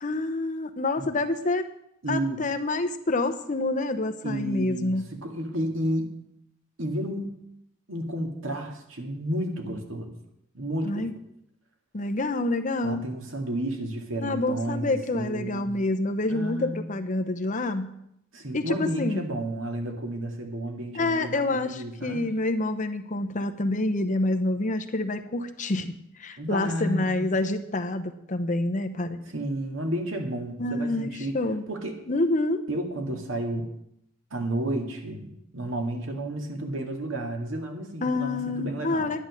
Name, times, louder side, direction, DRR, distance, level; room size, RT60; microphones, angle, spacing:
voice 1, 0.0-1.7 2.1-5.1 10.8-11.1 11.9-13.0 14.2-18.0 18.5-19.2 20.9-25.9 26.2-29.2 30.6-31.6 32.1-32.6 38.0-39.2, left 2 dB, 40° left, 7 dB, 0.9 m, -27 dB
voice 2, 2.0-2.4 4.2-6.1 6.8-7.3 7.9-10.1 10.5-11.1 12.8-15.8 16.3-16.8 18.3-22.3 26.4-27.3 29.3-31.3 31.7-32.0 32.7-33.7 34.3-39.1, right 1 dB, 75° right, 3 dB, 2.2 m, -31 dB
10.5 x 10.5 x 6.4 m, 0.76 s
head